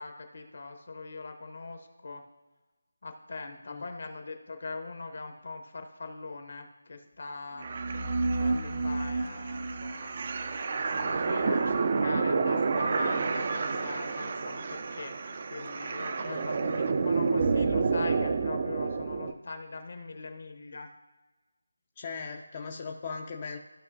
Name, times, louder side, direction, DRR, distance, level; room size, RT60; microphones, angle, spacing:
voice 1, 0.0-2.2 3.0-7.7 8.3-10.2 10.9-15.2 15.5-20.9, left 3 dB, 60° left, 6 dB, 1.1 m, -41 dB
sound 1, 7.6-19.3, right 4 dB, 40° right, 0.5 m, -29 dB
voice 2, 8.5-8.9 16.2-16.5 22.0-23.6, left 5 dB, 30° left, 2 dB, 0.6 m, -39 dB
15.0 x 5.1 x 2.7 m, 1.1 s
figure-of-eight pair, 165°, 0 cm